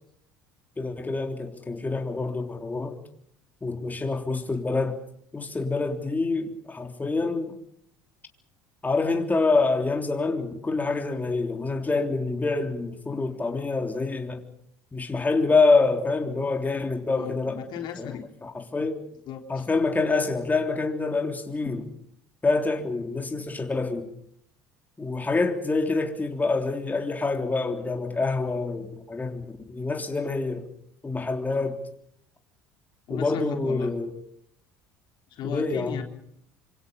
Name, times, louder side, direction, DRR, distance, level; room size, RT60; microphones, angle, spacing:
voice 1, 0.8-3.0 3.6-5.0 5.3-7.6 8.8-14.4 14.9-17.6 18.0-18.1 18.4-19.0 19.5-21.9 22.4-24.1 25.0-30.7 31.0-31.8 33.1-34.1 35.4-36.0, left 3 dB, 20° left, 3.5 m, -26 dB
voice 2, 17.1-18.2 19.3-19.7 33.1-33.9 35.3-36.0, left 9 dB, 60° left, 3.7 m, -36 dB
26.0 x 26.0 x 5.5 m
hypercardioid pair, 70°, 9 cm